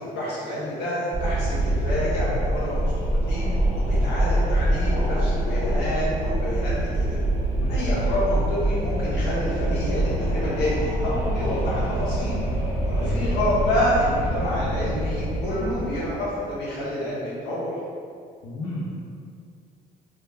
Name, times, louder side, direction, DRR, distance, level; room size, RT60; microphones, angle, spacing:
voice 1, 0.0-3.5 3.8-7.2 7.7-12.4 12.8-17.7, left 1 dB, 85° left, -7 dB, 0.9 m, -28 dB
Wind, 1.1-16.5, right 1 dB, 15° right, 0.7 m, -25 dB
voice 2, 18.4-18.9, left 1 dB, 65° left, -8 dB, 0.5 m, -32 dB
2.1 x 2.0 x 3.3 m, 2.3 s
cardioid pair, 110°, 17 cm